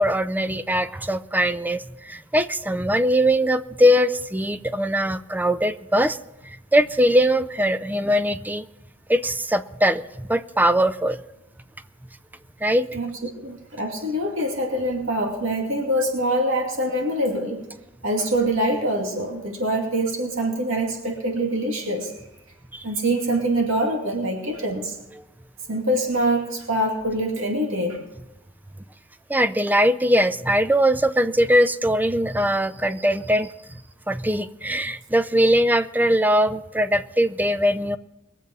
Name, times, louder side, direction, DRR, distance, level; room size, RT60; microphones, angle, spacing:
voice 1, 0.0-6.2 6.5-8.7 9.1-11.2 12.6-12.9 22.7-22.8 29.3-33.5 34.1-38.0, equal, 10° right, 13 dB, 0.5 m, -21 dB
voice 2, 12.9-17.7 18.0-22.1 22.8-25.0 25.7-28.0, right 1 dB, 75° right, 1 dB, 2.5 m, -24 dB
22.0 x 7.5 x 5.4 m, 0.93 s
head